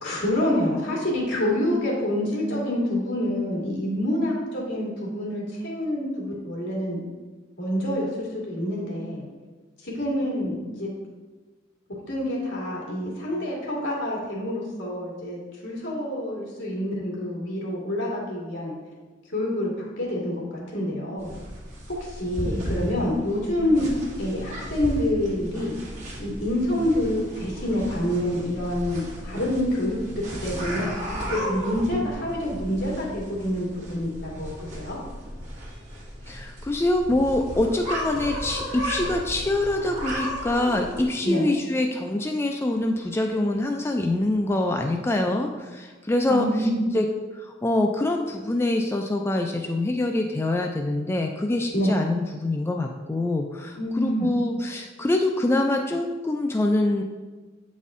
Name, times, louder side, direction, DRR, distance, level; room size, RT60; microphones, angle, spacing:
voice 1, 0.0-7.0 7.6-9.2 9.8-10.9 12.1-18.7 19.3-19.7 20.0-21.4 22.1-23.9 24.2-25.8 26.2-30.0 30.4-30.9 31.3-35.0 41.2-41.5 46.3-46.9 51.7-52.0 53.7-54.3, left 1 dB, 70° left, -4 dB, 2.1 m, -27 dB
sound 1, 21.2-41.1, equal, 40° right, 1.7 m, -35 dB
voice 2, 22.4-22.8 36.3-47.1 47.3-57.0, left 1 dB, 15° left, 3 dB, 0.3 m, -25 dB
7.9 x 4.2 x 3.6 m, 1.3 s
head